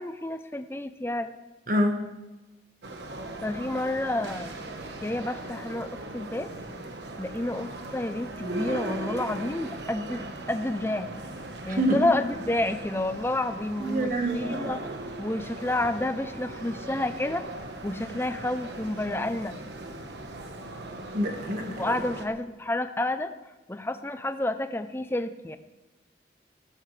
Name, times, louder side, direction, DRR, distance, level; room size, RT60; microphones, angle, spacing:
voice 1, 0.0-1.3 3.4-4.7 5.0-6.5 7.2-11.1 11.7-14.8 15.2-17.4 17.8-19.5 21.8-23.3 23.7-25.6, left 1 dB, 15° left, 9 dB, 0.6 m, -30 dB
voice 2, 1.7-2.0 11.7-12.0 13.8-14.6 21.1-21.9, equal, 50° right, 3 dB, 1.6 m, -26 dB
sound 1, 2.8-22.3, right 2 dB, 75° right, 1.3 m, -39 dB
18.5 x 15.0 x 3.3 m, 1.1 s
head